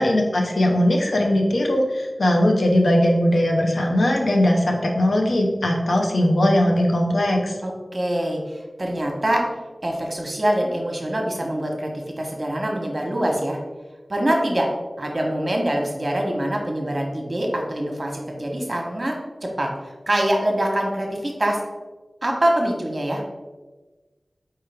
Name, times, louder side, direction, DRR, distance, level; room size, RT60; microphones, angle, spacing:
voice 1, 0.0-7.6, left 1 dB, 85° left, 1 dB, 0.7 m, -19 dB
voice 2, 7.6-9.4 9.8-11.9 12.2-13.6 14.1-14.7 15.0-19.1 19.4-19.7 20.1-21.6 22.2-23.2, right 1 dB, 40° right, 0 dB, 0.9 m, -24 dB
4.4 x 3.3 x 3.4 m, 1.2 s
wide cardioid pair, 55°, 0 cm